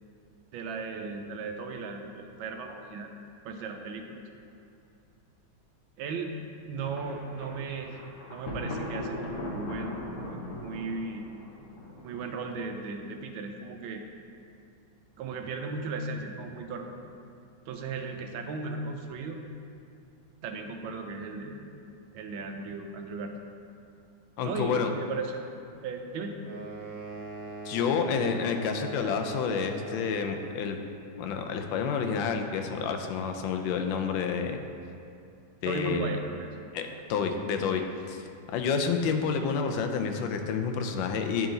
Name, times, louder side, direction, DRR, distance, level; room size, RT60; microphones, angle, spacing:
voice 1, 0.5-3.1 3.4-4.2 6.0-6.3 6.6-8.0 8.3-11.3 12.0-14.0 15.2-16.9 17.7-19.4 20.4-21.6 22.1-23.3 24.4-25.6 25.8-26.4 35.6-36.6, right 4 dB, 85° right, 4 dB, 1.4 m, -36 dB
Thunder, 6.8-12.7, left 1 dB, 50° left, 1.1 m, -39 dB
voice 2, 24.4-24.9 27.6-30.8 31.2-34.6 35.6-36.1 36.7-41.5, left 6 dB, 80° left, 5 dB, 1.3 m, -29 dB
sound 1, 26.4-30.3, right 2 dB, 40° right, 0.6 m, -40 dB
10.0 x 3.8 x 3.8 m, 2.6 s
omnidirectional pair, 2.2 m